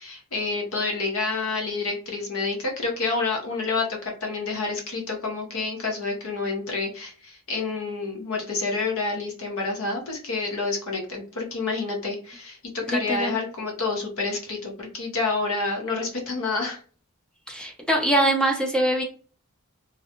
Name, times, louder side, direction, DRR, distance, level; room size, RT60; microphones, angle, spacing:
voice 1, 0.0-16.8, left 3 dB, 65° left, 1 dB, 0.7 m, -28 dB
voice 2, 12.8-13.4 17.5-19.0, right 1 dB, 5° left, 1 dB, 0.4 m, -23 dB
2.5 x 2.1 x 2.8 m, 0.41 s
head